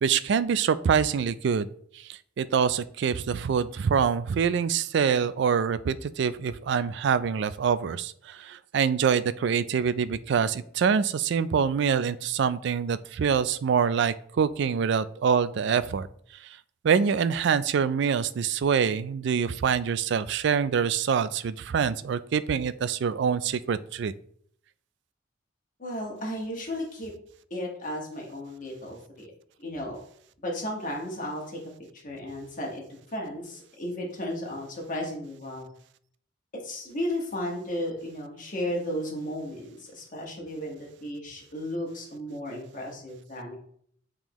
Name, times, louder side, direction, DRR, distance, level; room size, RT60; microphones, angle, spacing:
voice 1, 0.0-1.7 2.4-16.1 16.8-24.1, right 7 dB, 65° right, 15 dB, 0.3 m, -25 dB
voice 2, 25.8-27.1 27.5-29.3 29.6-30.0 30.4-31.6 31.9-32.8 33.1-35.7 36.6-43.6, left 1 dB, 45° left, -1 dB, 1.5 m, -34 dB
8.6 x 3.7 x 3.0 m, 0.63 s
head